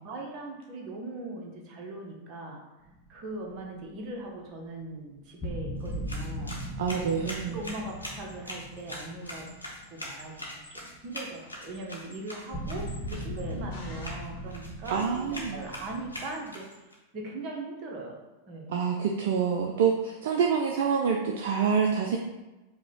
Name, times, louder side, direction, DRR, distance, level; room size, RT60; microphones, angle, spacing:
voice 1, 0.0-2.6 3.1-6.5 7.1-9.5 9.9-16.7 17.1-18.7, right 2 dB, 35° right, 0 dB, 0.8 m, -40 dB
sound 1, 2.9-3.8 5.4-10.5 10.8-11.0 12.5-16.3, equal, 15° left, 0.8 m, -38 dB
sound 2, 5.8-16.9, left 1 dB, 85° left, 0.9 m, -43 dB
voice 2, 6.8-7.6 14.9-15.6 18.7-22.2, right 6 dB, 55° right, 2 dB, 0.3 m, -26 dB
sound 3, 13.7-14.8, left 2 dB, 50° left, 1.0 m, -49 dB
4.8 x 2.2 x 3.7 m, 1.1 s
figure-of-eight pair, 90°, 0 cm